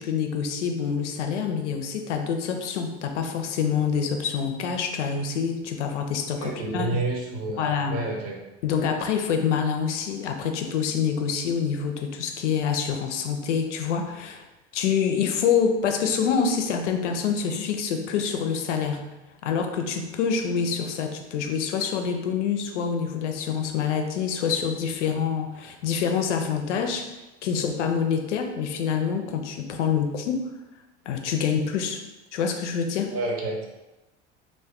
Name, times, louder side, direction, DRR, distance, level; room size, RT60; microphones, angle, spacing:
voice 1, 0.0-7.0 7.6-8.1 8.6-14.4 14.7-19.1 19.4-27.1 27.4-30.5 31.1-32.0 32.3-33.1, left 6 dB, 80° left, 5 dB, 0.5 m, -26 dB
voice 2, 6.4-8.4 33.1-33.7, right 2 dB, 40° right, -1 dB, 0.8 m, -29 dB
2.5 x 2.2 x 3.5 m, 1.0 s
hypercardioid pair, 75°, 36 cm